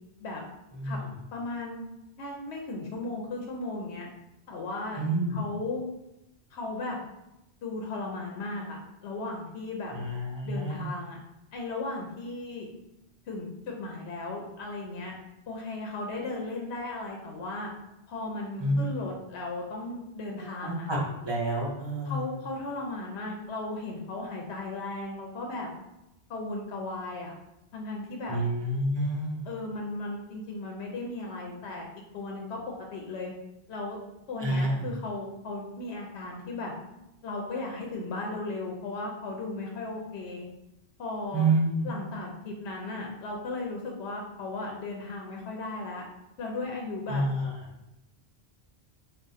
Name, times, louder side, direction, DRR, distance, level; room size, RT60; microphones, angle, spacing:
voice 1, 0.7-1.1 5.0-5.4 9.9-10.9 18.6-18.8 20.4-21.0 21.2-22.3 28.3-29.5 34.4-34.9 41.3-41.9 47.1-47.5, right 1 dB, 25° right, -4 dB, 0.9 m, -28 dB
voice 2, 1.3-1.8 2.2-4.1 4.5-5.0 5.3-5.8 6.5-7.0 7.6-9.9 10.4-11.2 11.5-12.7 13.3-15.1 15.5-17.7 18.1-20.9 22.0-25.7 26.3-27.3 27.7-28.4 29.4-31.9 32.1-32.6 32.9-33.3 33.7-34.0 34.3-36.7 37.2-40.5 41.0-41.5 41.8-46.0 46.4-47.2, left 2 dB, 85° left, 0 dB, 0.9 m, -36 dB
3.6 x 2.4 x 4.0 m, 0.89 s
omnidirectional pair, 1.1 m